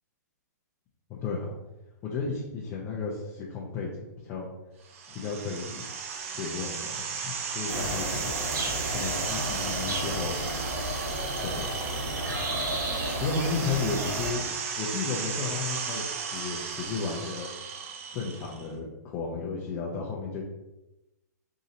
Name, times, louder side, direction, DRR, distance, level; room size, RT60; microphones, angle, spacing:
voice 1, 1.1-1.6 2.0-3.9 4.2-4.5 5.1-5.9 6.2-8.4 8.9-10.4 11.4-11.7 13.2-14.5 14.8-17.5 18.1-20.4, left 4 dB, 25° left, -4 dB, 0.6 m, -33 dB
sound 1, 4.9-18.7, right 6 dB, 45° right, 0.5 m, -35 dB
sound 2, 7.7-14.3, right 1 dB, 85° right, 1.3 m, -32 dB
4.1 x 3.8 x 2.7 m, 0.97 s
hypercardioid pair, 150°, 10 cm